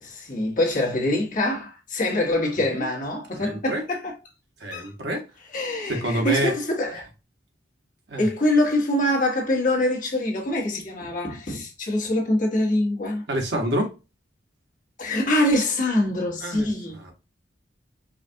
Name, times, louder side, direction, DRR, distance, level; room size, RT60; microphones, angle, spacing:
voice 1, 0.0-4.1 4.7-4.9 5.5-7.1 8.2-13.2 15.0-17.0, left 1 dB, 45° left, 1.3 m, -24 dB
voice 2, 3.4-3.8 4.6-5.2 5.8-6.5 8.1-8.3 13.3-13.9 16.4-16.7 17.0-17.1, right 1 dB, 65° right, 1.1 m, -27 dB
4.9 x 2.4 x 2.6 m
head